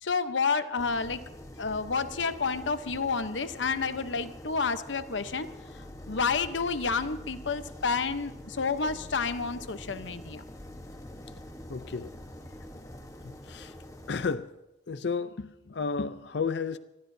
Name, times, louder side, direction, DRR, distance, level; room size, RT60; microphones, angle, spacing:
voice 1, 0.0-1.2 1.6-5.5 6.1-10.4, left 5 dB, 90° left, 0.9 m, -30 dB
sound 1, 0.8-14.3, left 1 dB, 20° left, 1.2 m, -45 dB
voice 2, 11.7-12.1 13.2-13.7 14.1-14.5 14.9-16.8, left 5 dB, 65° left, 0.5 m, -32 dB
25.5 x 20.5 x 2.7 m
head